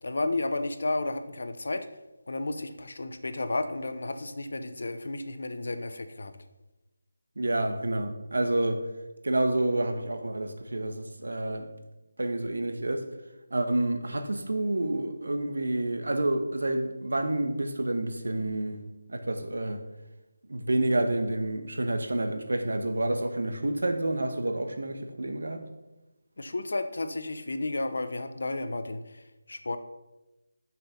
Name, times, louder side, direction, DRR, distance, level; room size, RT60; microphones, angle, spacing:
voice 1, 0.0-1.9 2.3-6.3 26.4-29.8, left 2 dB, 60° left, 0.8 m, -32 dB
voice 2, 7.4-8.8 9.2-11.7 12.2-13.1 13.5-18.8 19.1-19.8 20.5-25.6, right 1 dB, 85° right, 1.3 m, -29 dB
6.8 x 6.0 x 5.8 m
figure-of-eight pair, 180°, 0 cm